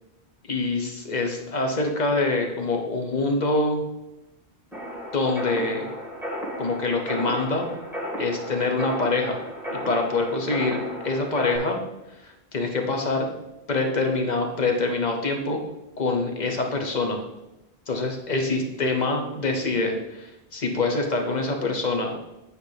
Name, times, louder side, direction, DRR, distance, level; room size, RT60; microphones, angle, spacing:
voice 1, 0.5-3.8 5.1-5.8 6.6-7.7 8.2-9.4 9.7-11.8 12.5-13.3 13.7-15.6 16.0-17.2 17.9-22.2, left 3 dB, 45° left, 3 dB, 1.0 m, -25 dB
sound 1, 4.7-11.6, equal, ahead, 1.7 m, -34 dB
9.2 x 4.6 x 3.4 m, 0.93 s
omnidirectional pair, 1.1 m